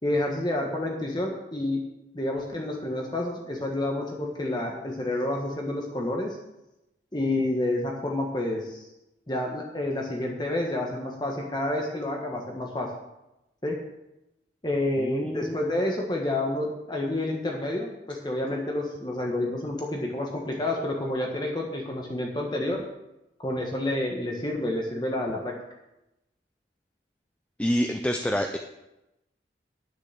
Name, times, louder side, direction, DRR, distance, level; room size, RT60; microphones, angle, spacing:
voice 1, 0.0-1.8 2.1-6.4 7.1-8.9 9.3-12.9 13.6-13.8 14.6-22.8 23.4-25.5, left 1 dB, 25° left, 0 dB, 1.3 m, -29 dB
voice 2, 15.0-15.6 27.6-28.6, equal, 5° left, 4 dB, 0.5 m, -27 dB
10.5 x 6.7 x 6.8 m, 0.92 s
head